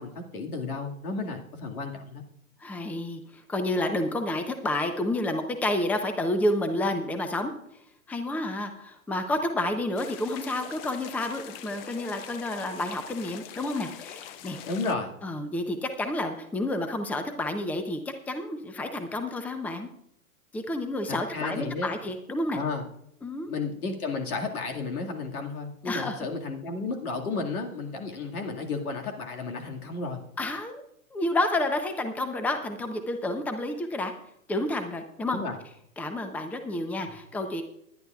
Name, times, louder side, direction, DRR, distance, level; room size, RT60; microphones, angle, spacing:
voice 1, 0.0-2.2 14.6-15.1 21.1-21.9 22.5-22.9 23.5-30.2 35.3-35.6 37.1-37.2, left 3 dB, 85° left, 2 dB, 2.2 m, -33 dB
voice 2, 2.6-7.5 8.1-14.6 15.2-18.0 18.3-19.9 20.5-22.6 23.2-23.5 25.9-26.3 30.4-30.8 31.1-34.1 34.5-35.4 36.0-37.6, left 1 dB, 5° left, 7 dB, 0.7 m, -30 dB
sound 1, 10.0-14.9, left 10 dB, 45° left, 0.8 m, -43 dB
20.0 x 10.5 x 2.4 m, 0.73 s
hypercardioid pair, 120°, 43 cm